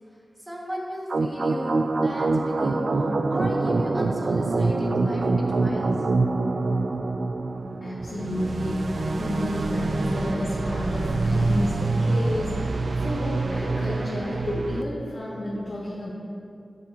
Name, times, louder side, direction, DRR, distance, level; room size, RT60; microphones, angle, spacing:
voice 1, 0.1-6.0 6.9-7.0, equal, 15° right, -3 dB, 1.8 m, -36 dB
sound 1, 1.1-14.8, right 3 dB, 70° right, 0.4 m, -25 dB
voice 2, 7.6-16.1, left 1 dB, 60° left, -10 dB, 2.1 m, -30 dB
11.5 x 9.5 x 2.9 m, 2.5 s
wide cardioid pair, 90°, 0 cm